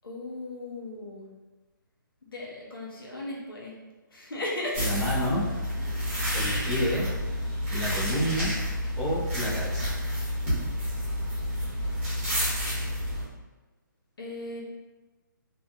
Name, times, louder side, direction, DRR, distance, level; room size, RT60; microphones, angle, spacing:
voice 1, 0.0-1.3 2.3-3.8 4.1-4.9 14.2-14.6, left 2 dB, 85° left, -4 dB, 1.0 m, -36 dB
sound 1, 4.7-13.2, equal, 10° right, 1.1 m, -29 dB
voice 2, 4.8-5.5 6.3-7.1 7.7-8.5 9.0-10.0, equal, 20° left, -10 dB, 0.9 m, -29 dB
3.2 x 2.7 x 2.3 m, 1.2 s
hypercardioid pair, 165°, 11 cm